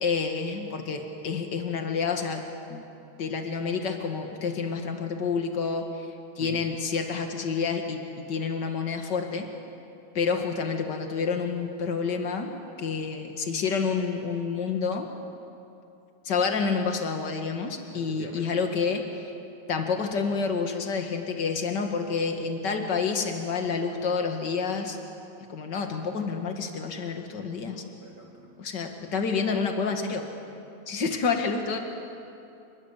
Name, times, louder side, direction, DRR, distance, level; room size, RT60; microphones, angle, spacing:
voice 1, 0.0-2.4 2.7-2.8 3.2-9.5 10.1-12.5 12.8-15.1 16.2-19.3 19.7-25.0 25.5-27.8 28.6-30.2 30.9-31.8, left 5 dB, 50° left, 4 dB, 1.3 m, -29 dB
voice 2, 17.9-18.5 27.6-28.5, right 3 dB, 45° right, -1 dB, 1.4 m, -44 dB
28.0 x 21.5 x 8.3 m, 2.7 s
omnidirectional pair, 4.7 m